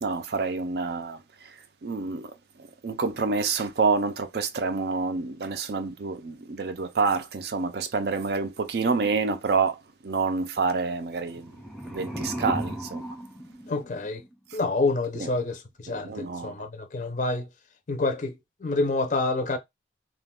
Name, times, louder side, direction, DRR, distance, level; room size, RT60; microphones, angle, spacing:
voice 1, 0.0-11.6 11.9-13.2 14.5-14.6 15.1-15.3 15.9-16.6, right 4 dB, 60° right, 0.4 m, -28 dB
sound 1, 11.3-14.3, right 1 dB, ahead, 0.6 m, -35 dB
voice 2, 13.7-14.2 14.5-17.5 17.9-19.6, left 3 dB, 40° left, 0.4 m, -28 dB
2.3 x 2.2 x 3.5 m
head